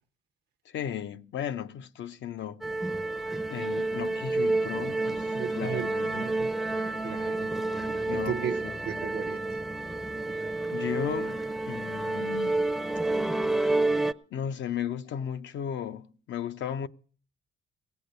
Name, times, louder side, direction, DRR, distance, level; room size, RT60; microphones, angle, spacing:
voice 1, 0.7-2.6 3.5-6.2 8.1-8.7 10.7-12.7 14.3-16.9, left 9 dB, 70° left, 0.7 m, -35 dB
sound 1, 2.6-14.1, right 2 dB, ahead, 0.5 m, -29 dB
voice 2, 5.3-6.5 7.0-9.4, right 9 dB, 55° right, 0.6 m, -36 dB
17.0 x 8.4 x 6.6 m
cardioid pair, 90°, 20 cm